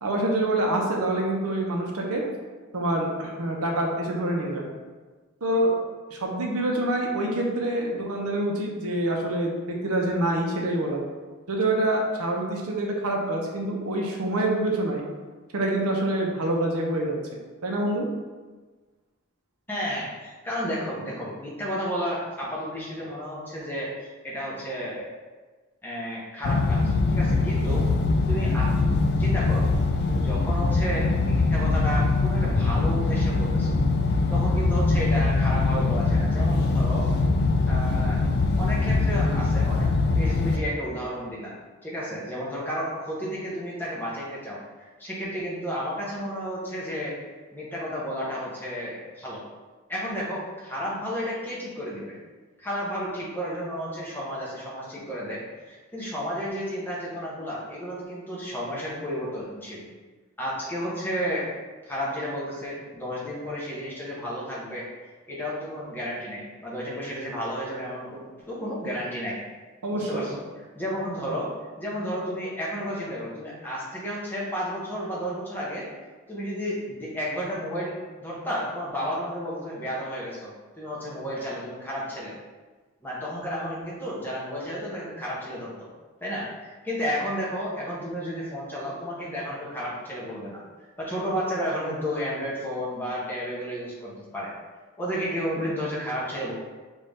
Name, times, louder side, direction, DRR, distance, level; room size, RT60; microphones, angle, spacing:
voice 1, 0.0-2.2 2.7-4.7 5.4-5.7 6.1-11.0 11.5-15.0 15.5-17.2 17.6-18.1 69.8-70.2, right 1 dB, 80° right, 0 dB, 0.9 m, -26 dB
voice 2, 19.7-25.1 25.8-27.9 28.3-28.7 29.0-29.6 30.1-33.8 34.3-37.1 37.7-38.2 38.6-41.5 41.8-47.2 47.5-49.4 49.9-52.2 52.6-59.8 60.4-61.5 61.8-64.9 65.3-69.4 69.9-70.4 70.7-71.5 71.8-75.9 76.3-80.5 80.8-82.3 83.0-85.9 86.2-90.6 91.0-94.5 95.0-96.5, equal, 10° left, -6 dB, 1.0 m, -32 dB
sound 1, 26.4-40.6, left 3 dB, 45° left, 0.3 m, -22 dB
5.4 x 2.7 x 3.5 m, 1.3 s
head